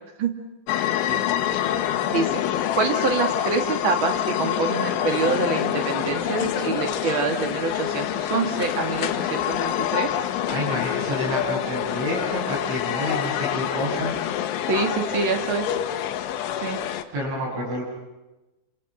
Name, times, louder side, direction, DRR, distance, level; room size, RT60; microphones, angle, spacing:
sound 1, 0.7-17.0, left 11 dB, 90° left, 3.5 m, -26 dB
voice 1, 2.1-2.4 2.8-10.1 14.7-15.7 16.6-16.8, right 4 dB, 50° right, 4 dB, 1.5 m, -26 dB
voice 2, 10.5-14.2 17.1-17.8, equal, 80° right, -4 dB, 10.0 m, -29 dB
28.5 x 27.0 x 6.3 m, 1.1 s
omnidirectional pair, 5.3 m